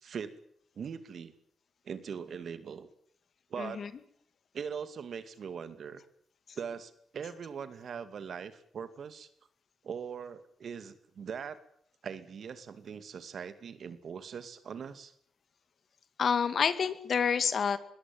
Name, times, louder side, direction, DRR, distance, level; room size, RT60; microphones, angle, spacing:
voice 1, 0.0-0.3 0.8-1.3 1.8-2.9 3.5-3.8 4.5-6.0 6.6-9.3 9.8-11.6 12.0-15.1, right 7 dB, 65° right, 12 dB, 2.4 m, -41 dB
voice 2, 3.6-3.9 16.2-17.8, left 6 dB, 60° left, 13 dB, 2.1 m, -28 dB
22.0 x 17.5 x 9.5 m, 0.67 s
cardioid pair, 70°, 0 cm